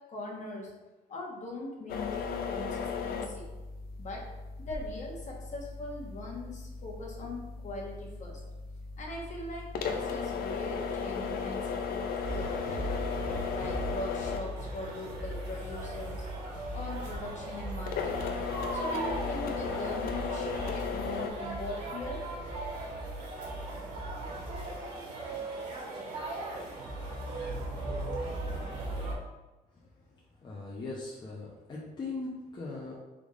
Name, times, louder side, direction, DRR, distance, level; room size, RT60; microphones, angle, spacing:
voice 1, 0.1-0.7 1.1-3.4 4.0-4.3 4.6-8.4 9.0-12.9 13.5-16.3 16.7-18.4 18.7-22.2, left 2 dB, 45° left, -1 dB, 1.2 m, -41 dB
sound 1, 1.9-21.3, left 5 dB, 65° left, 0.5 m, -36 dB
sound 2, 12.2-29.1, right 2 dB, 75° right, 1.4 m, -38 dB
voice 2, 30.4-32.9, left 3 dB, 25° left, -5 dB, 0.8 m, -40 dB
3.6 x 3.5 x 3.6 m, 1.1 s
cardioid pair, 110°, 17 cm